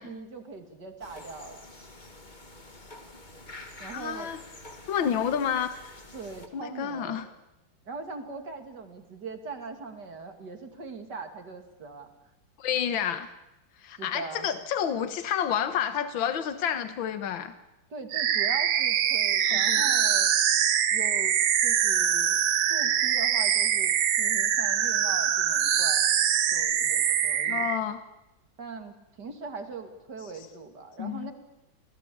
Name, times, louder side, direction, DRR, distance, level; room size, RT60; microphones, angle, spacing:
voice 1, 0.0-1.6 3.8-4.3 6.1-7.3 7.9-12.1 13.9-14.5 17.9-20.3 20.9-22.4 22.7-26.1 26.5-27.7 28.6-31.3, right 4 dB, 60° right, 6 dB, 3.1 m, -41 dB
sound 1, 1.0-6.5, left 2 dB, 25° left, 2.1 m, -47 dB
voice 2, 3.9-4.4 4.9-6.0 6.5-7.3 12.6-13.3 13.8-17.5 19.5-19.8 27.5-28.0 31.0-31.3, left 8 dB, 85° left, 10 dB, 2.0 m, -29 dB
sound 2, 18.1-27.8, right 9 dB, 80° right, 1.8 m, -24 dB
27.5 x 19.0 x 8.6 m, 0.96 s
omnidirectional pair, 2.1 m